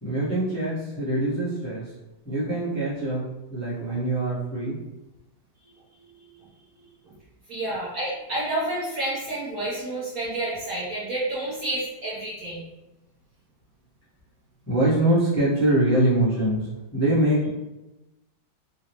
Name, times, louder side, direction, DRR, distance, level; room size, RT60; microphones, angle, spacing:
voice 1, 0.0-1.9 2.2-4.8 6.7-6.9 14.7-17.5, right 1 dB, 25° left, -11 dB, 0.3 m, -24 dB
voice 2, 7.5-12.6, right 1 dB, 60° right, -7 dB, 1.0 m, -29 dB
3.8 x 2.1 x 2.8 m, 1.0 s
omnidirectional pair, 2.2 m